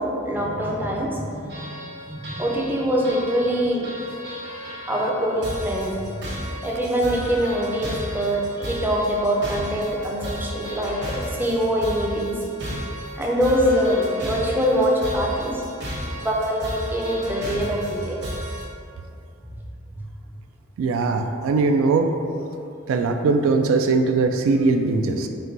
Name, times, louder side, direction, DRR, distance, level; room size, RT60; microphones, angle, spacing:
voice 1, 0.0-1.8 2.1-3.9 4.9-6.2 6.6-12.4 13.1-15.6 16.2-18.2, equal, 10° right, -2 dB, 0.4 m, -24 dB
sound 1, 1.5-18.6, equal, 60° right, 0.9 m, -34 dB
voice 2, 20.8-22.1 22.9-25.3, right 3 dB, 85° right, 4 dB, 0.3 m, -20 dB
4.4 x 2.2 x 3.8 m, 2.5 s
head